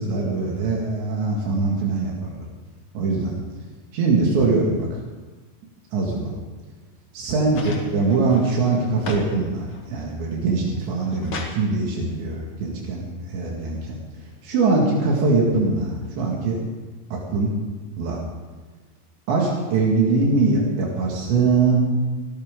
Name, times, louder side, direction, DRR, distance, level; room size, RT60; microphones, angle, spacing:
voice 1, 0.0-2.5 2.9-3.4 3.9-5.0 5.9-6.3 7.1-16.6 17.1-17.6 18.0-18.2 19.3-21.9, right 3 dB, 80° right, -3 dB, 4.4 m, -22 dB
sound 1, 7.5-9.3 9.7-10.2 10.7-11.6 12.8-12.9, left 3 dB, 60° left, 1.2 m, -35 dB
26.5 x 13.5 x 3.8 m, 1.3 s
omnidirectional pair, 5.1 m